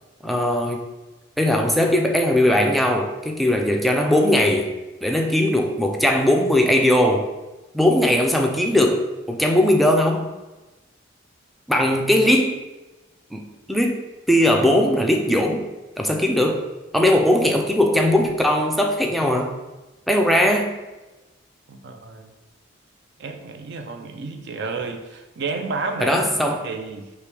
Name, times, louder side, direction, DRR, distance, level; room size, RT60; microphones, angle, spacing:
voice 1, 0.2-0.9 1.4-4.7 5.0-7.3 7.7-10.3 11.7-12.6 13.3-15.6 16.0-16.6 16.9-19.5 20.1-20.7 26.0-26.6, left 1 dB, ahead, 1 dB, 0.3 m, -19 dB
voice 2, 21.7-22.3 23.2-27.1, right 3 dB, 60° right, 5 dB, 0.5 m, -31 dB
4.8 x 2.9 x 3.3 m, 1.1 s
head